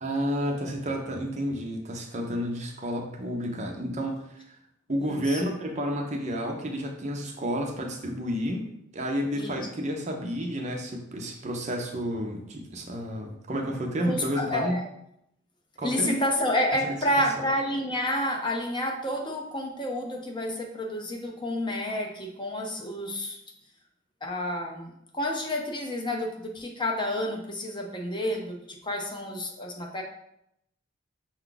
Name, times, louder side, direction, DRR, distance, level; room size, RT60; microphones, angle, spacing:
voice 1, 0.0-4.6 4.9-8.6 8.9-14.8 15.8-16.2 16.8-16.9, equal, 35° right, 2 dB, 0.6 m, -31 dB
voice 2, 4.9-5.4 9.3-9.6 14.1-14.8 15.8-23.4 24.2-30.0, left 1 dB, 25° left, 1 dB, 0.6 m, -30 dB
5.6 x 2.3 x 3.8 m, 0.78 s
head